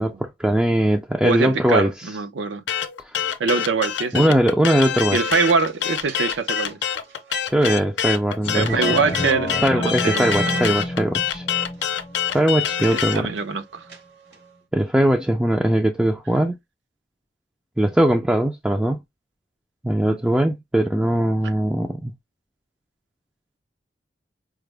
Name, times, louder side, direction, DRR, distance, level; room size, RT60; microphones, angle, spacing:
voice 1, 0.0-1.9 3.0-3.2 4.1-5.2 7.5-9.0 9.6-11.4 12.3-13.3 14.7-16.5 17.8-19.0 19.8-22.1, right 1 dB, 5° right, 0.3 m, -20 dB
voice 2, 1.2-2.6 3.4-4.2 5.1-6.9 8.5-10.8 12.9-13.9 20.1-20.2 21.4-21.5, right 4 dB, 85° right, 0.6 m, -24 dB
sound 1, 2.7-13.2, left 9 dB, 85° left, 0.6 m, -25 dB
sound 2, 4.7-8.2 8.6-9.6 10.1-10.6 11.3-11.4 11.7-14.6, right 6 dB, 70° right, 1.0 m, -38 dB
sound 3, 8.4-13.5 13.9-14.0, left 1 dB, 30° left, 0.6 m, -30 dB
4.8 x 2.0 x 3.2 m
head